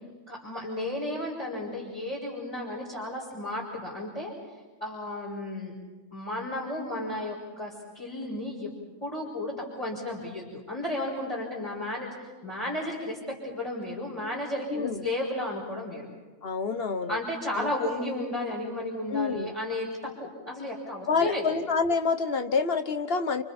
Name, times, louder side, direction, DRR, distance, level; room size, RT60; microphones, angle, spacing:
voice 1, 0.3-4.3 4.8-5.7 6.1-8.7 9.0-12.1 12.4-16.1 17.1-21.5, left 1 dB, 20° left, -7 dB, 5.9 m, -33 dB
voice 2, 14.7-15.0 16.4-17.2 17.6-17.7 19.1-19.5 21.1-23.4, left 4 dB, 40° left, 9 dB, 1.2 m, -27 dB
29.5 x 29.0 x 4.4 m, 1.3 s
omnidirectional pair, 1.7 m